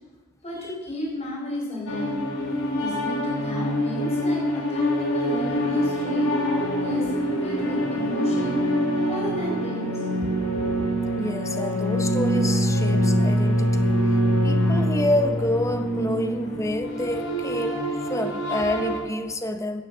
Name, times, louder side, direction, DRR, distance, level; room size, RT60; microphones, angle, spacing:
voice 1, 0.4-2.1 2.8-6.3 6.8-8.8 9.1-10.9, equal, 30° left, -3 dB, 4.5 m, -33 dB
sound 1, 1.9-19.0, equal, 80° left, 3.8 m, -24 dB
voice 2, 11.2-19.8, left 1 dB, 15° left, 7 dB, 0.9 m, -28 dB
15.0 x 7.2 x 6.7 m, 1.2 s
head